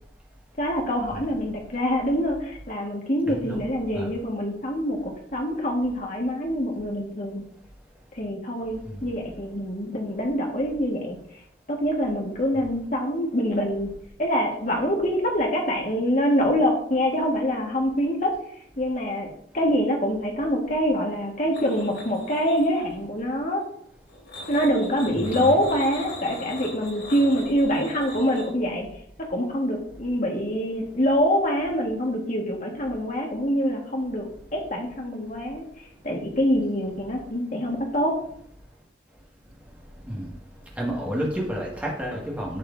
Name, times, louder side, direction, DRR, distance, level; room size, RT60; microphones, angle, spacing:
voice 1, 0.6-7.4 8.1-11.2 11.7-13.9 14.2-18.3 18.8-19.3 19.5-23.6 24.5-28.9 29.3-35.6 36.0-38.2, equal, 40° left, 0 dB, 1.7 m, -25 dB
voice 2, 1.1-1.4 3.2-3.6 3.9-4.1 8.9-9.0 25.1-25.6 40.1-40.3 40.8-42.6, equal, 10° right, -4 dB, 1.9 m, -30 dB
sound 1, 21.5-23.0 24.1-28.5, left 2 dB, 70° left, 3.9 m, -40 dB
11.0 x 6.9 x 2.7 m, 0.68 s
head